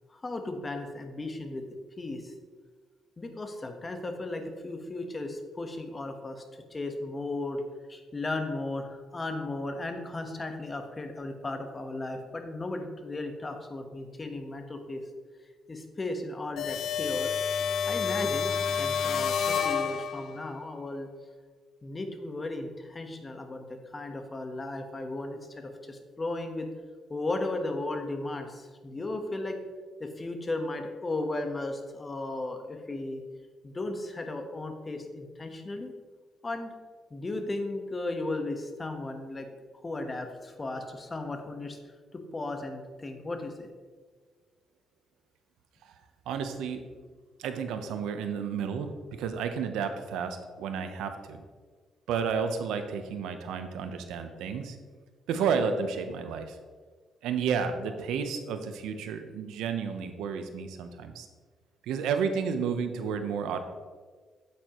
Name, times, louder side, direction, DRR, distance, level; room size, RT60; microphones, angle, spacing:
voice 1, 0.1-1.7 2.0-2.3 3.2-6.4 6.7-7.6 7.9-15.0 15.7-17.4 17.9-21.1 21.8-26.7 27.1-29.6 30.0-33.2 33.6-35.9 36.4-36.7 37.1-39.5 39.8-41.8 42.1-43.5, left 2 dB, 25° left, 6 dB, 1.2 m, -35 dB
sound 1, 16.6-20.5, left 7 dB, 70° left, 0.6 m, -29 dB
voice 2, 46.3-46.9 47.4-48.9 49.2-51.4 52.1-54.8 55.3-56.6 57.2-61.3 61.8-63.6, right 6 dB, 90° right, 8 dB, 0.8 m, -31 dB
8.6 x 8.5 x 3.0 m, 1.5 s
cardioid pair, 90°, 0 cm